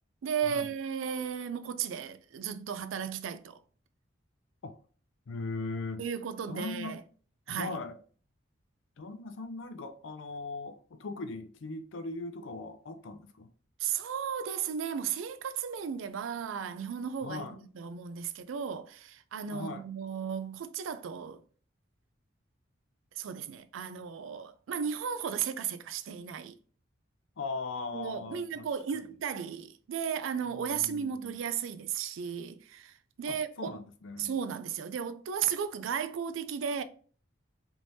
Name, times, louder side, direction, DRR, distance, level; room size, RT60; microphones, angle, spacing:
voice 1, 0.2-3.6 6.0-7.0 7.5-7.8 13.8-21.4 23.1-26.6 27.9-33.7 34.2-36.8, right 7 dB, 80° right, 0.4 m, -35 dB
voice 2, 5.3-6.0 6.5-7.0 7.5-8.0 9.0-13.5 17.2-17.6 19.5-19.8 27.4-28.7 30.5-31.4 33.3-34.4, left 3 dB, 75° left, 0.5 m, -39 dB
3.4 x 3.1 x 2.6 m
head